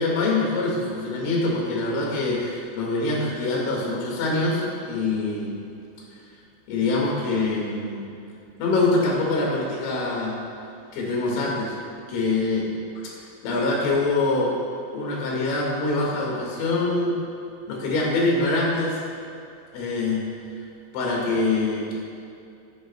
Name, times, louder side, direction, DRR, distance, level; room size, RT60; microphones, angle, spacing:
voice 1, 0.0-5.6 6.7-8.1 8.6-10.4 10.9-11.7 12.1-12.7 13.4-14.6 14.9-17.2 17.7-19.0 19.7-20.3 20.9-21.9, left 2 dB, 80° left, -4 dB, 4.7 m, -24 dB
16.5 x 10.5 x 2.3 m, 2.6 s
omnidirectional pair, 5.8 m